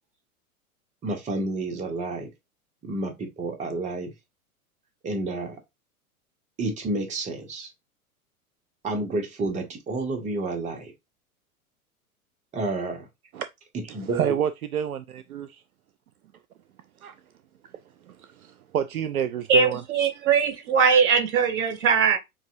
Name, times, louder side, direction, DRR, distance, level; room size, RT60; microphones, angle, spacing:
voice 1, 1.0-2.3 2.8-4.1 5.0-5.6 6.6-7.7 8.8-10.9 12.5-13.1 13.9-14.3, right 2 dB, 15° right, 1.1 m, -30 dB
voice 2, 14.0-15.5 17.0-17.1 18.4-19.8 20.1-20.3, right 9 dB, 75° right, 0.5 m, -28 dB
voice 3, 19.5-22.2, right 6 dB, 55° right, 1.9 m, -21 dB
7.1 x 2.8 x 2.5 m
figure-of-eight pair, 95°, 44 cm